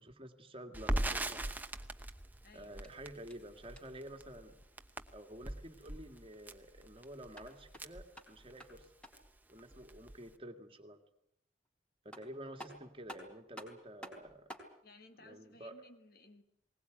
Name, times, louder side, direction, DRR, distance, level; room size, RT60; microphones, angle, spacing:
voice 1, 0.0-1.5 2.5-4.6 5.1-8.9 9.5-11.0 12.0-14.5 15.2-15.9, right 1 dB, 30° right, 6 dB, 2.0 m, -50 dB
Crackle, 0.7-8.8 9.1-9.3 9.6-10.3, right 1 dB, 10° right, 0.9 m, -40 dB
voice 2, 2.4-2.8 14.8-16.4, left 2 dB, 55° left, 7 dB, 2.0 m, -59 dB
sound 1, 2.8-4.1 7.1-9.4 11.6-11.7 12.1-14.7, equal, 5° left, 4.0 m, -53 dB
20.5 x 19.5 x 9.2 m, 0.75 s
head